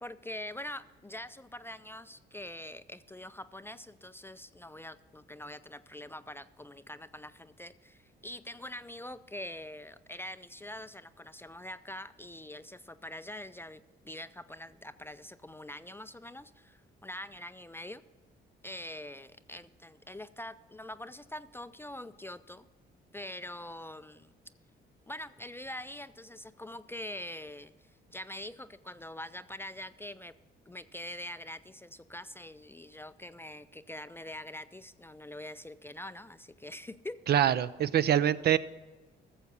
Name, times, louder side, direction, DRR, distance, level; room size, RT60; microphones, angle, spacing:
voice 1, 0.0-18.0 18.6-22.7 23.1-24.3 25.1-27.7 28.1-30.3 30.7-37.2, left 1 dB, 10° left, 13 dB, 0.3 m, -44 dB
voice 2, 37.3-38.6, right 10 dB, 55° right, 16 dB, 0.5 m, -25 dB
14.5 x 7.1 x 5.4 m, 1.2 s
cardioid pair, 90°, 20 cm